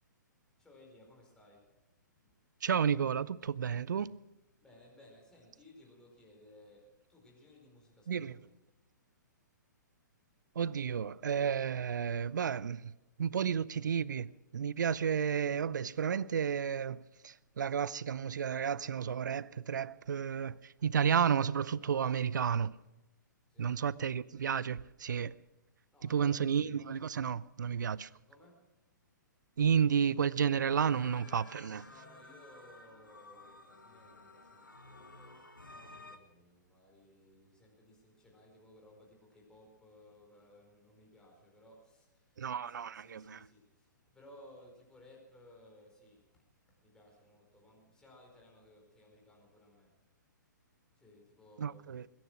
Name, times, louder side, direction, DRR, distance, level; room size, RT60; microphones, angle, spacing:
voice 1, 0.6-1.7 2.2-2.3 4.6-8.5 23.5-23.8 25.9-26.5 28.3-28.7 30.8-31.3 31.8-35.4 35.7-46.4 46.7-50.0 50.9-52.1, left 1 dB, 5° left, 5.0 m, -60 dB
voice 2, 2.6-4.1 8.1-8.3 10.6-12.9 13.2-22.8 23.6-25.4 26.1-28.1 29.6-31.9 42.4-43.4 51.6-52.0, right 7 dB, 70° right, 0.6 m, -32 dB
sound 1, 30.6-36.2, left 2 dB, 90° left, 1.7 m, -54 dB
21.5 x 10.5 x 6.1 m
figure-of-eight pair, 125°, 11 cm